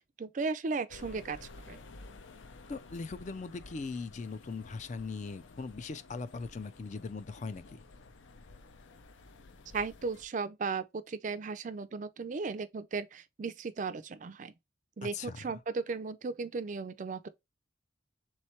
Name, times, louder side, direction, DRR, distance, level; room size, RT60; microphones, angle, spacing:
voice 1, 0.0-1.8 9.7-14.5 15.0-17.3, right 4 dB, 40° right, 0.4 m, -36 dB
sound 1, 0.9-10.3, left 3 dB, 85° left, 0.6 m, -53 dB
voice 2, 2.7-7.6 15.0-15.6, left 4 dB, 40° left, 0.4 m, -40 dB
3.5 x 3.1 x 4.2 m
head